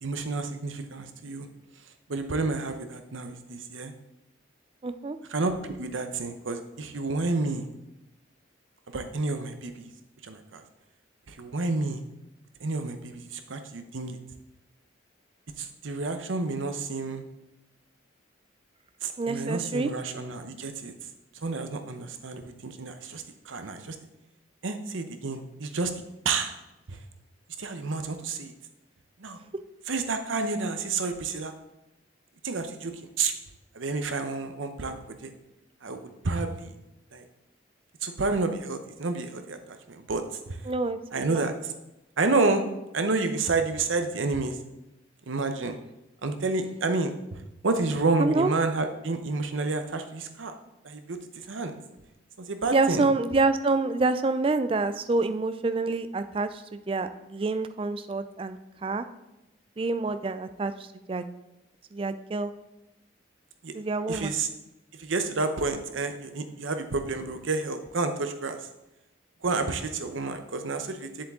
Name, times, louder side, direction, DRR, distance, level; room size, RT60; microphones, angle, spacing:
voice 1, 0.0-1.5 2.1-3.9 5.3-7.7 8.9-9.9 10.2-10.6 11.3-12.0 12.6-14.2 15.6-17.2 19.0-20.9 21.4-23.9 24.6-25.9 26.2-26.5 26.9-27.0 27.6-28.5 29.2-29.4 29.9-31.5 32.4-33.3 33.7-35.3 35.8-36.7 37.1-37.2 38.0-40.6 41.1-41.5 42.2-42.6 42.9-44.6 45.3-45.8 46.2-47.1 47.6-50.5 50.8-51.2 51.5-51.7 52.4-53.1 60.2-60.3 63.6-63.7 64.1-64.5 65.0-68.6 69.4-71.1, right 3 dB, 80° right, 7 dB, 0.8 m, -30 dB
voice 2, 4.8-5.2 19.2-19.9 40.7-41.4 48.2-48.5 52.7-59.1 59.8-61.3 61.9-62.5 63.7-64.3, right 3 dB, 25° right, 12 dB, 0.3 m, -27 dB
7.3 x 7.3 x 3.7 m, 0.94 s
head